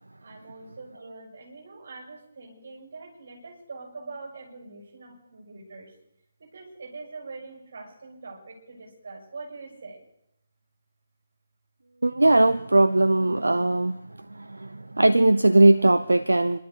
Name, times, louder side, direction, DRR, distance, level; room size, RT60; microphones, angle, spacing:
voice 1, 0.2-5.9 6.4-10.0, right 3 dB, 50° right, 6.8 m, -43 dB
voice 2, 12.0-14.0 15.0-16.6, right 2 dB, 75° right, 0.7 m, -19 dB
29.5 x 12.0 x 4.0 m
figure-of-eight pair, 145°, 0 cm